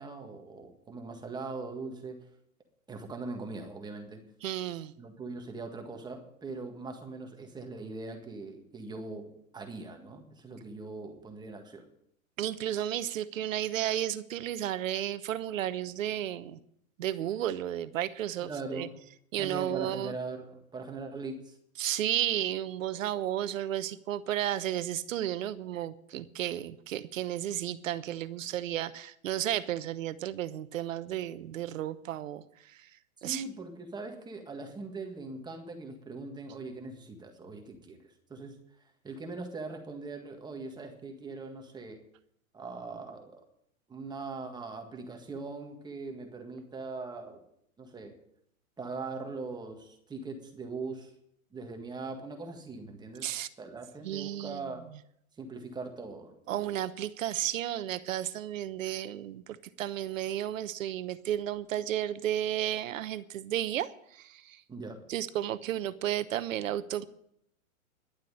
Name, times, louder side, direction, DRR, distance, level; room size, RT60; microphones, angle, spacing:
voice 1, 0.0-2.2 2.9-4.2 5.0-11.9 18.4-19.0 19.4-21.6 33.2-38.6 39.0-42.0 42.5-43.4 43.9-47.4 47.8-48.2 48.8-51.1 51.5-54.8 55.4-56.8 64.7-65.0, right 3 dB, 10° right, 4 dB, 1.7 m, -41 dB
voice 2, 4.4-4.9 12.4-16.6 17.0-18.9 19.3-20.1 21.8-32.4 33.2-33.4 53.2-53.5 54.0-54.6 56.5-64.6 65.1-67.0, right 12 dB, 65° right, 15 dB, 1.0 m, -33 dB
11.5 x 7.6 x 9.9 m, 0.72 s
hypercardioid pair, 135°, 42 cm